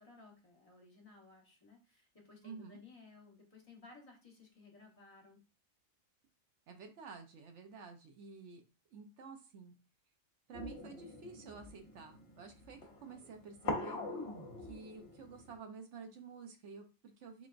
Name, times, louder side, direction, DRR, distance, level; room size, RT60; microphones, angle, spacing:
voice 1, 0.0-5.4, left 3 dB, 30° left, -2 dB, 1.3 m, -58 dB
voice 2, 2.4-2.8 6.7-8.6 8.9-9.8 10.5-14.0 14.6-17.5, right 5 dB, 65° right, 5 dB, 0.9 m, -51 dB
sound 1, 10.5-15.6, left 2 dB, 60° left, 1.0 m, -43 dB
3.8 x 3.4 x 2.5 m, 0.31 s
omnidirectional pair, 1.4 m